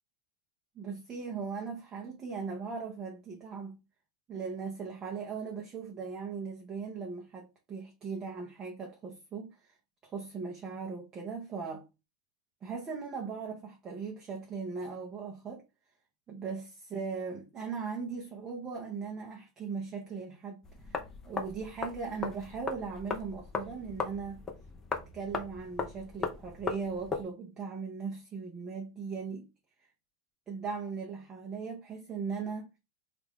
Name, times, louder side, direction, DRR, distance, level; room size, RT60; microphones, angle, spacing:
voice 1, 0.8-3.8 4.3-9.8 10.0-11.9 12.6-15.6 16.3-21.0 21.3-24.5 25.1-29.5 30.5-32.7, right 5 dB, 20° right, 0.7 m, -39 dB
sound 1, 20.6-27.2, left 5 dB, 15° left, 0.6 m, -38 dB
3.3 x 2.5 x 3.4 m
supercardioid pair, 145°, 3 cm